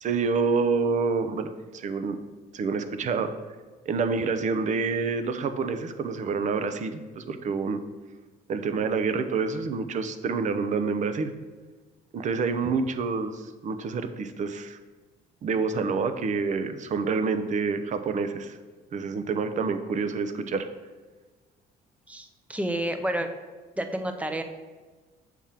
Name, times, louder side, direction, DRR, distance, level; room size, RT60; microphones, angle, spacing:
voice 1, 0.0-2.2 2.5-3.3 3.9-7.8 8.5-11.3 12.1-14.8 15.4-18.6 18.9-20.7, right 4 dB, 45° right, 9 dB, 0.6 m, -27 dB
voice 2, 22.1-23.3 23.8-24.4, right 1 dB, 10° right, 7 dB, 0.6 m, -30 dB
7.4 x 3.5 x 5.7 m, 1.3 s
cardioid pair, 110°, 17 cm